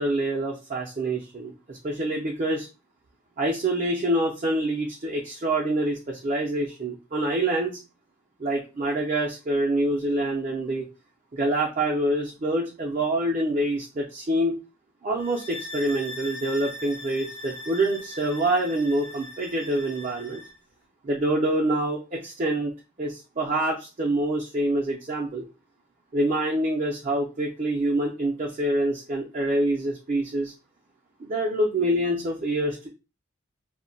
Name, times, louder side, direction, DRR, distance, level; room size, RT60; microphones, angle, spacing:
voice 1, 0.0-2.7 3.4-7.8 8.4-10.8 11.3-14.6 15.0-20.4 21.0-22.7 23.0-25.4 26.1-30.5 31.2-32.9, right 1 dB, 40° right, -1 dB, 0.4 m, -26 dB
sound 1, 15.2-20.6, left 1 dB, 60° left, 0.6 m, -40 dB
2.1 x 2.1 x 3.8 m, 0.30 s
head